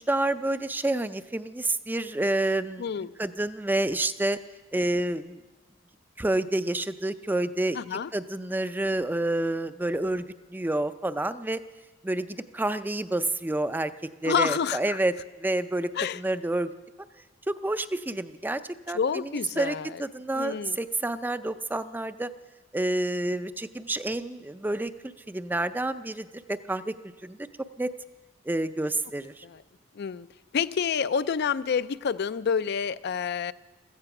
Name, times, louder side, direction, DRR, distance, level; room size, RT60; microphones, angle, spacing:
voice 1, 0.0-2.9 3.2-4.4 4.7-5.4 6.2-7.8 8.1-10.2 10.5-11.6 12.0-13.9 14.2-15.1 15.4-16.7 17.5-18.6 18.9-22.3 22.7-26.9 27.2-27.4 27.8-27.9 28.5-29.4, right 1 dB, 10° right, 12 dB, 0.4 m, -28 dB
voice 2, 2.8-3.1 7.7-8.1 14.2-15.0 16.0-16.2 18.9-20.0 20.3-20.8 29.4-29.6 30.0-30.3 30.5-33.5, left 6 dB, 55° left, 15 dB, 0.4 m, -28 dB
15.5 x 14.5 x 5.9 m, 1.2 s
head